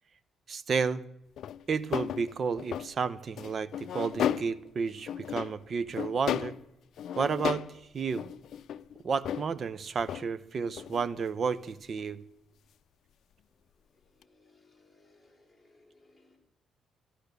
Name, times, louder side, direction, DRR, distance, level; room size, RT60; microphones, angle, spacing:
voice 1, 0.5-1.0 1.7-6.6 7.2-7.6 7.9-8.2 9.0-12.2, right 5 dB, 45° right, 18 dB, 0.8 m, -31 dB
sound 1, 1.4-2.9 3.4-4.7 5.0-5.6 6.0-6.6 7.0-7.8 8.0-9.5 10.0-10.3 10.7-11.1 11.7-11.8 14.2-14.3, left 10 dB, 70° left, 0.5 m, -34 dB
voice 2, 13.9-16.4, left 2 dB, 10° left, 0 dB, 4.3 m, -64 dB
14.0 x 12.0 x 6.8 m, 0.86 s
cardioid pair, 90°, 0 cm